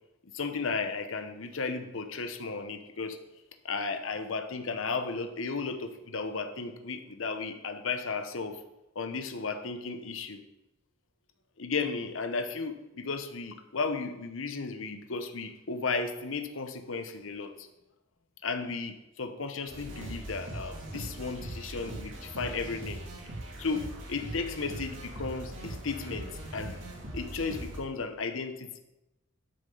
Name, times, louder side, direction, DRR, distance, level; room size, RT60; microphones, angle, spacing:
voice 1, 0.3-3.2 3.6-8.6 8.9-10.4 11.6-17.7 18.4-23.0 23.6-26.8 27.1-28.8, left 4 dB, 80° left, 8 dB, 0.9 m, -34 dB
sound 1, 19.7-27.8, right 1 dB, 65° right, 2.4 m, -40 dB
12.0 x 6.4 x 3.9 m, 0.96 s
head